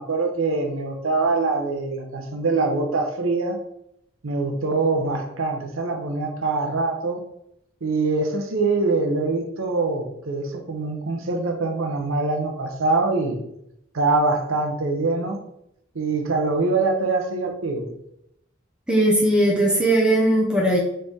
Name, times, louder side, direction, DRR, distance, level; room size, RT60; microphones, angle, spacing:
voice 1, 0.0-3.6 4.2-7.2 7.8-13.4 13.9-15.4 15.9-17.9, right 3 dB, 80° right, 4 dB, 0.7 m, -24 dB
voice 2, 18.9-20.8, right 1 dB, 5° right, -4 dB, 0.7 m, -18 dB
4.0 x 3.3 x 3.5 m, 0.78 s
head